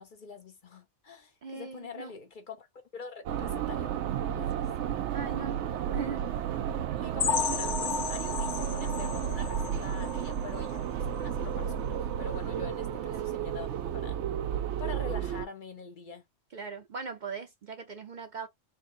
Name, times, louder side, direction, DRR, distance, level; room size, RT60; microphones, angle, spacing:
voice 1, 0.0-2.7 2.9-3.9 4.3-4.9 7.0-13.7 13.9-14.2 14.8-16.2, left 4 dB, 50° left, 0.8 m, -44 dB
voice 2, 1.4-2.1 5.1-5.6 5.9-6.3 7.6-7.7 13.1-13.3 16.5-18.5, right 5 dB, 50° right, 0.6 m, -40 dB
sound 1, 3.3-15.5, right 9 dB, 85° right, 0.9 m, -32 dB
sound 2, 7.2-10.8 11.2-11.4 11.7-11.8 12.3-12.4, left 7 dB, 85° left, 1.0 m, -33 dB
3.6 x 2.7 x 3.6 m
omnidirectional pair, 1.2 m